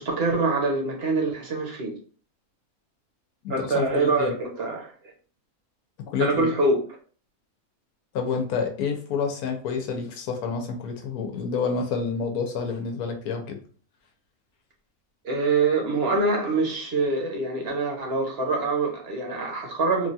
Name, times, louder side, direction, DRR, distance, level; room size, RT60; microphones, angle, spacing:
voice 1, 0.0-2.0 3.5-4.9 6.2-6.8 15.2-20.1, right 3 dB, 50° right, 1 dB, 0.8 m, -25 dB
voice 2, 3.4-4.3 6.1-6.5 8.1-13.6, left 5 dB, 85° left, 4 dB, 1.1 m, -28 dB
3.1 x 2.3 x 2.6 m, 0.42 s
omnidirectional pair, 1.6 m